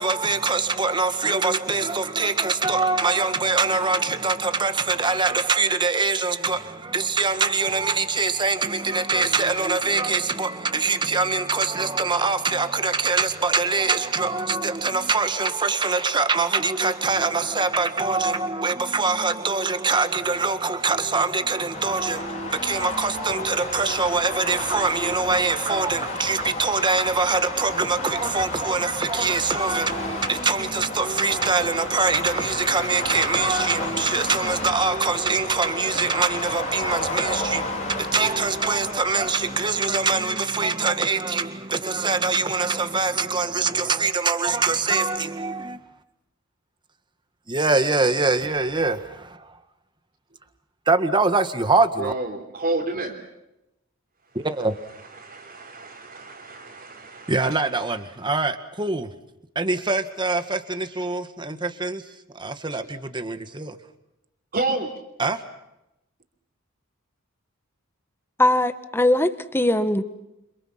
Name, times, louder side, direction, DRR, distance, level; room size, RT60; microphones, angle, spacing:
voice 1, 0.0-45.8 47.5-49.6 50.8-52.1 54.3-54.7 57.3-59.1 59.5-62.1 62.3-63.8 65.2-65.4, right 4 dB, 25° right, 1.8 m, -23 dB
sound 1, 21.7-40.2, left 2 dB, 35° left, 4.5 m, -32 dB
voice 2, 52.0-53.2 55.1-57.6 64.5-65.0, right 2 dB, 45° right, 3.4 m, -30 dB
voice 3, 68.4-70.0, left 1 dB, 10° left, 1.5 m, -20 dB
29.5 x 26.5 x 5.9 m
head